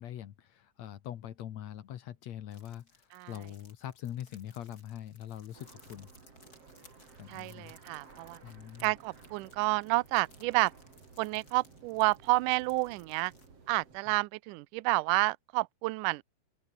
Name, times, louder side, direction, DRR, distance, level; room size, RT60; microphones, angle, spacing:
voice 1, 0.0-6.1 7.2-7.7 8.4-8.9 14.1-14.2, left 11 dB, 60° left, 2.1 m, -43 dB
sound 1, 2.5-13.5, left 2 dB, 25° left, 6.1 m, -61 dB
sound 2, 5.5-14.0, right 4 dB, 40° right, 5.0 m, -56 dB
voice 2, 7.3-8.4 8.8-10.7 11.2-13.3 13.7-16.2, right 24 dB, 80° right, 1.9 m, -30 dB
open air
omnidirectional pair, 4.3 m